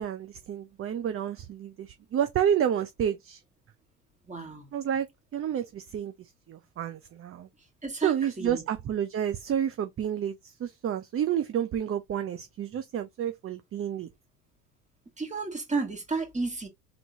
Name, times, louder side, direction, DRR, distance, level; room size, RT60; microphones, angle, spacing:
voice 1, 0.0-3.4 4.7-7.5 8.0-14.1, right 9 dB, 30° right, 0.6 m, -30 dB
voice 2, 4.3-4.7 7.8-8.6 15.2-16.7, right 3 dB, 15° right, 1.9 m, -32 dB
3.8 x 3.7 x 2.7 m
hypercardioid pair, 85°, 44 cm